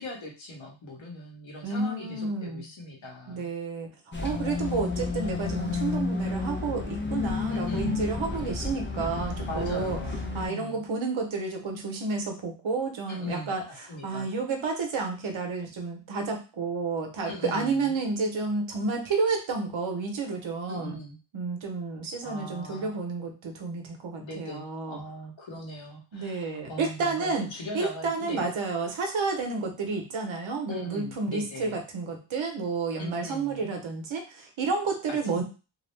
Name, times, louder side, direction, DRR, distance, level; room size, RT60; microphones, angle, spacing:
voice 1, 0.0-3.5 7.5-7.9 9.5-10.8 13.1-14.3 17.3-17.9 20.6-21.2 22.2-23.0 24.2-28.5 30.7-31.8 33.0-33.7 35.1-35.4, left 1 dB, 70° left, -1 dB, 1.1 m, -40 dB
voice 2, 1.6-2.7 3.3-3.9 4.2-10.0 10.3-21.0 21.3-25.0 26.1-27.5 27.7-35.4, right 4 dB, 70° right, 3 dB, 0.8 m, -30 dB
sound 1, 4.1-10.5, left 4 dB, 25° left, 0.5 m, -31 dB
2.5 x 2.0 x 3.1 m, 0.33 s
wide cardioid pair, 85°, 48 cm